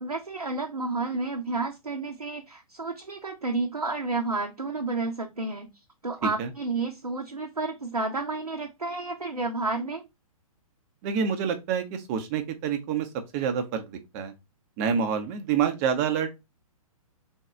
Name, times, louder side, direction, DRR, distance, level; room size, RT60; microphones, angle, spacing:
voice 1, 0.0-5.7 6.0-10.0, right 3 dB, 85° right, 0.6 m, -31 dB
voice 2, 11.0-13.1 13.3-14.3 14.8-16.3, right 7 dB, 25° right, 0.6 m, -27 dB
3.5 x 2.3 x 4.1 m
figure-of-eight pair, 120°, 19 cm